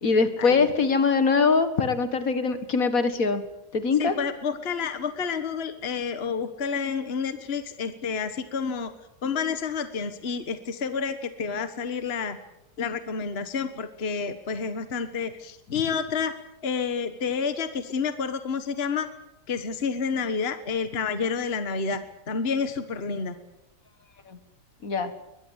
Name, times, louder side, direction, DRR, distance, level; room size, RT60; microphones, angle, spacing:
voice 1, 0.0-3.4 3.7-4.1 24.3-24.4 24.8-25.1, left 4 dB, 60° left, 10 dB, 2.1 m, -22 dB
voice 2, 4.0-8.9 9.2-12.4 12.8-16.3 16.6-19.1 19.5-23.3, left 5 dB, 40° left, 10 dB, 1.6 m, -29 dB
22.5 x 21.5 x 8.1 m, 0.84 s
omnidirectional pair, 1.7 m